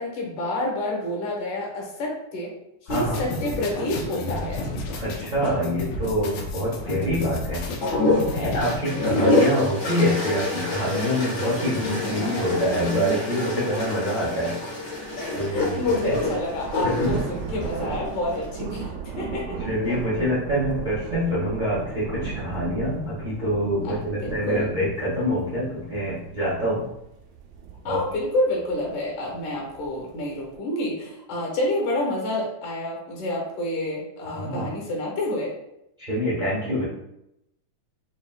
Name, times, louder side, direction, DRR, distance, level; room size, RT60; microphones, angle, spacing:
voice 1, 0.0-2.5 2.9-4.6 8.3-8.7 9.2-9.3 11.2-11.3 11.7-11.9 12.2-12.6 15.5-19.6 23.8-23.9 24.2-24.7 27.8-35.5, left 1 dB, 70° left, -2 dB, 2.4 m, -28 dB
sound 1, 2.9-8.8, left 2 dB, 85° left, 2.5 m, -32 dB
voice 2, 2.9-3.2 5.0-7.6 8.4-15.0 15.3-16.1 16.8-17.1 17.4-17.6 19.7-26.8 27.8-28.0 34.4-34.7 36.0-36.8, equal, 75° right, -9 dB, 0.4 m, -26 dB
sound 2, 7.8-18.5 19.7-20.2, left 2 dB, 45° left, 1.1 m, -27 dB
sound 3, 14.7-30.6, right 6 dB, 90° right, 2.4 m, -37 dB
6.4 x 2.9 x 2.3 m, 0.84 s
omnidirectional pair, 4.0 m